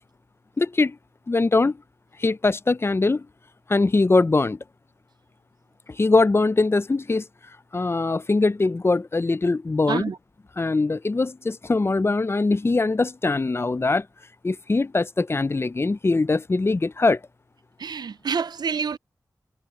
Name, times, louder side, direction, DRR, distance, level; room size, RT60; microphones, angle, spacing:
voice 1, 0.6-1.0 1.3-1.8 2.2-3.3 3.7-4.6 6.0-7.3 7.7-10.1 10.6-14.1 14.4-17.2, left 3 dB, 35° left, 0.5 m, -22 dB
voice 2, 17.8-19.0, right 6 dB, 85° right, 0.5 m, -27 dB
wide cardioid pair, 60°, 7 cm